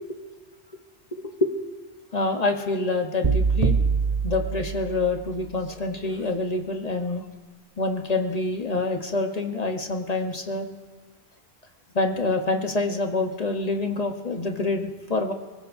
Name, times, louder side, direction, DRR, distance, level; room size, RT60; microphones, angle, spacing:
voice 1, 2.1-3.8 4.2-7.2 7.8-10.7 11.9-15.3, left 3 dB, 40° left, 4 dB, 1.0 m, -26 dB
sound 1, 3.2-5.4, right 5 dB, 40° right, 0.8 m, -24 dB
23.5 x 20.0 x 2.6 m, 1.4 s
omnidirectional pair, 1.1 m